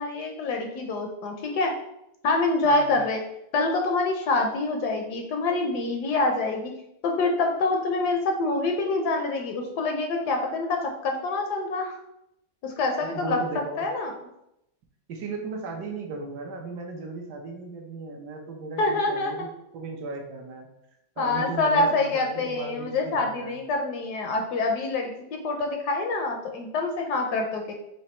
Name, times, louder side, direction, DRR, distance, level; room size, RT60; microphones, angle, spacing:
voice 1, 0.0-1.7 2.2-3.2 3.5-6.7 7.0-12.0 12.6-13.4 13.8-14.1 18.8-19.5 21.2-27.7, left 3 dB, 70° left, 3 dB, 1.0 m, -26 dB
voice 2, 2.6-3.0 13.0-13.9 15.1-20.7 21.2-23.6, right 3 dB, 70° right, 1 dB, 1.2 m, -36 dB
5.1 x 2.3 x 4.2 m, 0.81 s
omnidirectional pair, 2.0 m